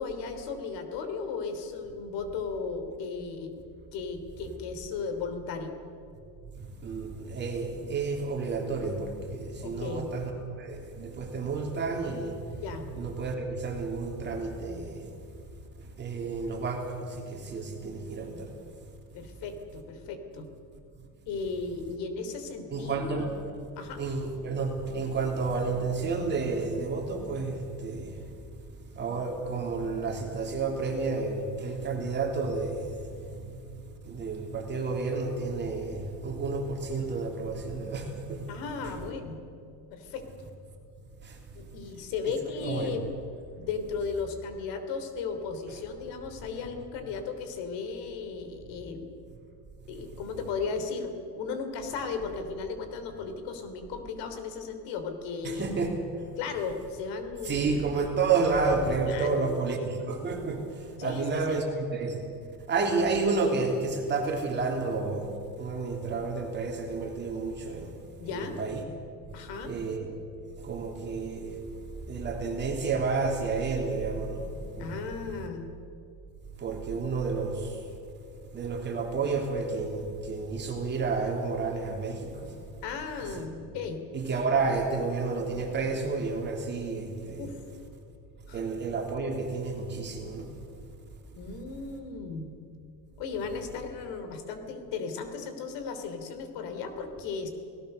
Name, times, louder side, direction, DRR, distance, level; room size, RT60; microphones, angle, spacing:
voice 1, 0.0-3.6 3.9-5.8 9.6-10.1 12.6-12.8 19.1-20.5 21.3-23.1 23.8-24.1 38.5-39.4 39.9-40.5 41.5-43.0 43.6-49.1 49.9-55.7 56.4-57.8 59.1-59.5 61.0-61.6 68.2-68.6 69.3-69.7 74.8-75.7 82.8-84.0 87.4-87.6 88.5-88.6 91.3-92.5 93.2-97.5, left 5 dB, 75° left, 7 dB, 3.3 m, -35 dB
voice 2, 6.8-12.6 12.9-15.1 16.0-18.5 22.7-23.4 24.0-28.2 28.9-32.8 33.1-33.5 34.0-38.4 41.2-41.4 42.6-43.0 55.4-56.0 57.4-62.2 62.7-65.3 65.6-68.0 68.3-68.8 69.6-70.1 70.6-71.6 72.1-75.0 76.6-77.8 78.5-82.5 83.4-83.5 84.1-87.5 88.5-90.5, right 4 dB, 25° right, 1 dB, 3.1 m, -30 dB
29.0 x 18.0 x 6.7 m, 2.6 s
cardioid pair, 180°, 42 cm